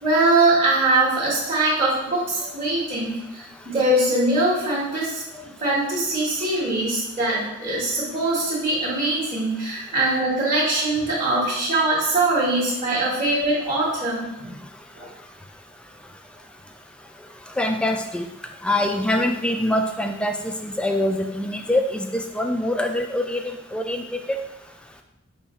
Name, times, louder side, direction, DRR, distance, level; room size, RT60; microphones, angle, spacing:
voice 1, 0.0-14.6 14.9-15.1, right 2 dB, 30° right, -11 dB, 1.3 m, -22 dB
voice 2, 17.6-18.2 18.6-22.1 22.3-23.4 23.7-24.0 24.3-24.4, left 1 dB, 5° left, 4 dB, 0.3 m, -24 dB
5.5 x 2.3 x 4.1 m, 0.91 s
head